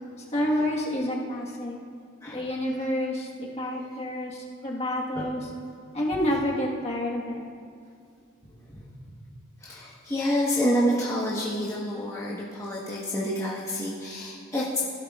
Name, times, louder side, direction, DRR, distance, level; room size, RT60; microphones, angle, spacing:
voice 1, 0.1-1.8 2.3-5.5 5.9-7.4, left 1 dB, 30° left, -3 dB, 1.4 m, -29 dB
voice 2, 8.7-9.1 9.6-14.8, equal, 15° left, -7 dB, 1.2 m, -28 dB
15.5 x 12.0 x 2.4 m, 2.3 s
head